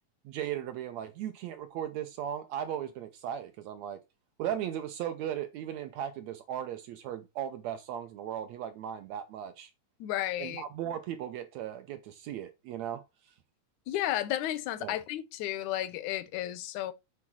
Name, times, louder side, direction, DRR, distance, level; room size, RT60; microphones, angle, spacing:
voice 1, 0.3-4.0 4.4-9.7 10.4-13.0 14.8-15.0, right 10 dB, 75° right, 1.8 m, -37 dB
voice 2, 10.0-10.6 13.9-16.9, left 13 dB, 80° left, 2.1 m, -33 dB
8.4 x 3.5 x 6.1 m
omnidirectional pair, 3.5 m